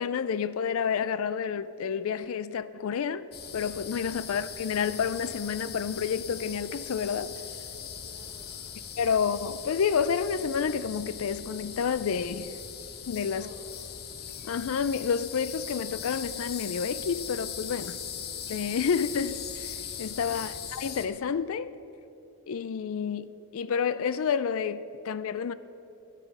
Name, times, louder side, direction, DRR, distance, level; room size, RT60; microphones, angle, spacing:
voice 1, 0.0-3.3 3.5-7.4 9.0-12.6 13.1-13.5 14.4-18.0 18.5-21.7 22.5-25.5, left 6 dB, 65° left, 0.4 m, -29 dB
sound 1, 3.3-21.1, left 8 dB, 45° left, 0.8 m, -40 dB
voice 2, 7.8-8.6 8.9-9.1 13.1-13.8 17.8-17.9 20.1-20.4, right 2 dB, 40° right, 1.3 m, -53 dB
13.0 x 9.3 x 5.3 m
head